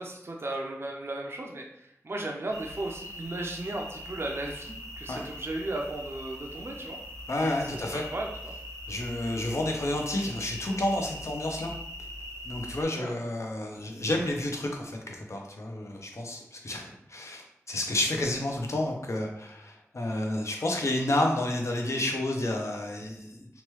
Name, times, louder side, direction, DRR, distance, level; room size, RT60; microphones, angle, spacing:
voice 1, 0.0-7.0 7.6-8.5 12.9-13.1, right 2 dB, 50° right, 0 dB, 0.4 m, -36 dB
sound 1, 2.5-12.8, left 1 dB, 80° right, 0.9 m, -42 dB
voice 2, 7.3-8.0 8.9-11.7 12.4-23.5, left 1 dB, 65° left, 1 dB, 0.6 m, -30 dB
3.0 x 2.3 x 3.0 m, 0.79 s
wide cardioid pair, 50°, 5 cm